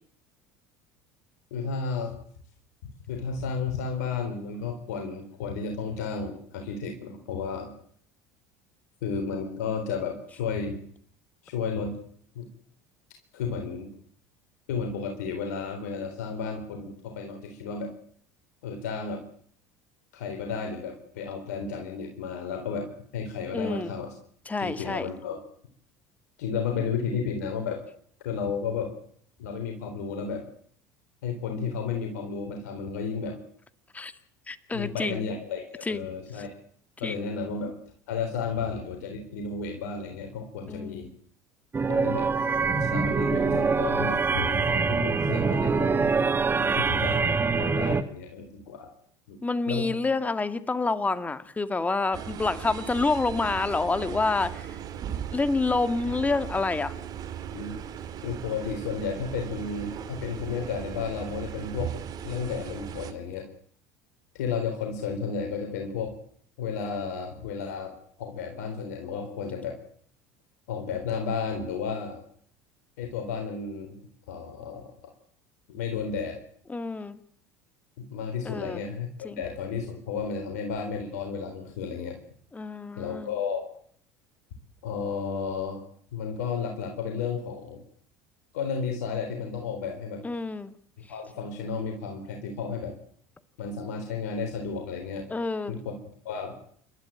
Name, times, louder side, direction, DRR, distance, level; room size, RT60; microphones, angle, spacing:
voice 1, 1.5-2.2 3.1-7.7 9.0-10.8 11.4-11.9 12.4-12.5 13.3-13.9 14.7-17.9 18.6-19.2 20.1-24.1 24.6-25.4 26.4-27.8 28.2-28.9 29.4-30.5 31.2-33.4 34.7-36.6 37.0-37.7 38.1-41.1 41.9-42.3 42.7-46.1 46.8-48.9 49.3-49.4 49.7-49.9 57.5-57.8 58.2-61.9 62.2-63.5 64.3-66.1 66.6-67.9 68.2-69.8 70.7-72.2 73.0-74.0 74.3-74.8 75.7-76.4 78.0-82.2 83.0-83.7 84.8-85.8 86.1-87.8 88.5-90.2 91.1-92.9 93.6-95.3 95.7-95.9 96.2-96.6, left 5 dB, 75° left, 3 dB, 3.9 m, -32 dB
voice 2, 23.5-23.9 24.5-25.1 33.9-34.1 34.5-35.3 35.9-36.1 37.0-37.3 40.7-41.1 46.5-47.3 49.4-54.7 55.3-56.9 76.7-77.2 78.5-78.8 79.2-79.4 82.5-83.3 90.2-90.7 95.3-95.7, left 3 dB, 15° left, 12 dB, 2.1 m, -28 dB
sound 1, 41.7-48.0, right 4 dB, 25° right, 1.6 m, -24 dB
sound 2, 52.1-63.1, right 9 dB, 50° right, 2.7 m, -38 dB
29.0 x 13.0 x 9.0 m, 0.62 s
hypercardioid pair, 75°, 9 cm